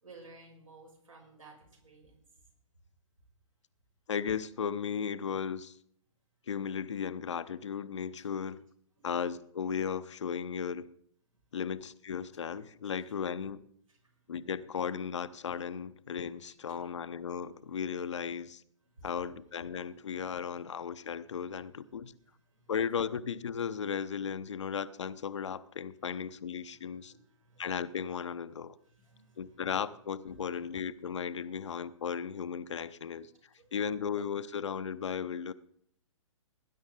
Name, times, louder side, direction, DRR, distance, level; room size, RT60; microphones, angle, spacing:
voice 1, 0.0-2.2 8.2-8.3 19.0-19.1 27.1-27.6 29.0-29.6, right 3 dB, 80° right, 0 dB, 6.1 m, -55 dB
voice 2, 4.1-5.8 6.5-8.6 9.0-10.9 11.5-13.6 14.3-18.6 19.0-22.1 22.7-27.1 27.6-28.8 29.4-33.3 33.7-35.5, left 7 dB, 60° left, 14 dB, 0.8 m, -36 dB
19.0 x 10.5 x 3.9 m, 0.69 s
figure-of-eight pair, 125°, 17 cm